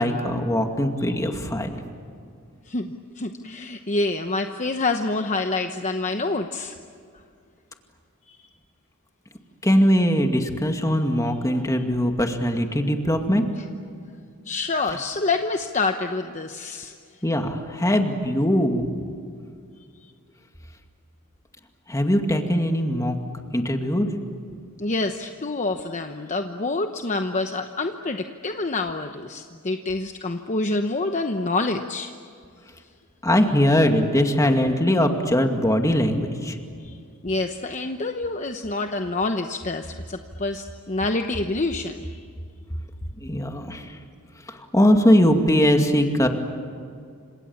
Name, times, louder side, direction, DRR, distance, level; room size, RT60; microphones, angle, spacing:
voice 1, 0.0-1.7 9.6-13.5 17.2-18.9 21.9-23.1 23.5-24.1 33.2-36.6 43.2-44.0 44.5-46.3, equal, 15° left, 4 dB, 2.3 m, -21 dB
voice 2, 1.0-1.3 2.7-6.8 8.3-8.5 14.5-16.9 24.8-32.1 36.8-37.0 37.2-42.3, left 3 dB, 35° left, 6 dB, 1.0 m, -27 dB
29.5 x 27.0 x 7.3 m, 2.3 s
head